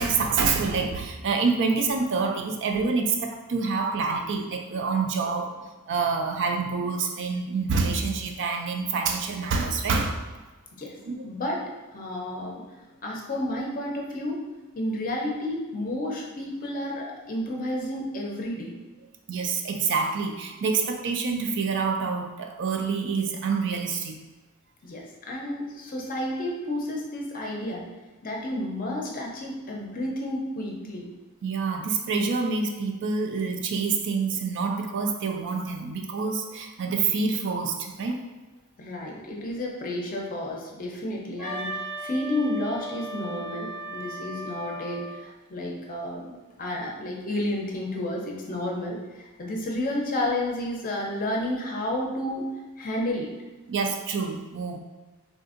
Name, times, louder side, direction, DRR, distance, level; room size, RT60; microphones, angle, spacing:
voice 1, 0.0-5.5 5.9-10.2 11.1-11.2 19.3-24.2 31.4-38.2 53.7-54.8, right 4 dB, 55° right, 3 dB, 0.3 m, -27 dB
voice 2, 11.2-11.6 11.9-12.6 13.0-14.4 14.7-18.7 24.8-27.8 28.2-31.1 38.8-52.4 52.8-53.3, left 1 dB, 40° left, -1 dB, 0.6 m, -31 dB
Wind instrument woodwind instrument, 41.4-45.2, right 1 dB, 85° right, 1.0 m, -36 dB
3.7 x 2.5 x 2.4 m, 1.2 s
head